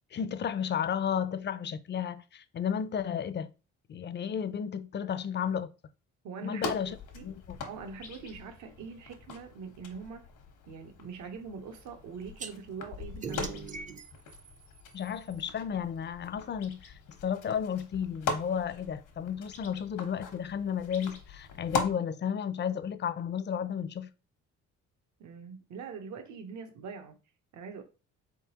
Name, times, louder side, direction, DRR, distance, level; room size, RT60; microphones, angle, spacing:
voice 1, 0.1-3.5 3.9-5.7 6.4-7.0 7.2-7.6 14.9-24.1, left 8 dB, 35° left, 0.4 m, -33 dB
voice 2, 6.2-7.3 7.6-10.3 10.7-13.6 25.2-27.2 27.5-27.8, right 5 dB, 70° right, 0.9 m, -43 dB
sound 1, 6.6-21.9, left 4 dB, 80° left, 1.1 m, -41 dB
sound 2, 12.4-12.5 13.2-15.4, right 5 dB, 25° right, 0.5 m, -41 dB
3.9 x 3.6 x 2.8 m
cardioid pair, 90°, 30 cm